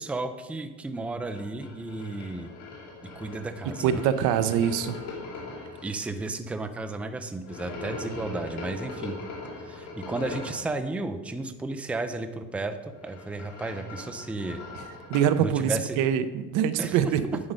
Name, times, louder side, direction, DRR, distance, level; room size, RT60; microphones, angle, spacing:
voice 1, 0.0-2.5 3.0-4.0 5.8-9.2 9.6-12.8 13.0-14.6 15.4-16.0 16.8-17.4, right 2 dB, 5° right, 8 dB, 0.4 m, -33 dB
sound 1, 1.3-5.8 7.4-10.7 12.8-15.4, left 3 dB, 65° left, 2.8 m, -40 dB
voice 2, 3.8-5.0 15.1-17.2, right 9 dB, 85° right, 12 dB, 0.7 m, -24 dB
9.6 x 5.6 x 5.1 m, 1.2 s
cardioid pair, 155°, 30 cm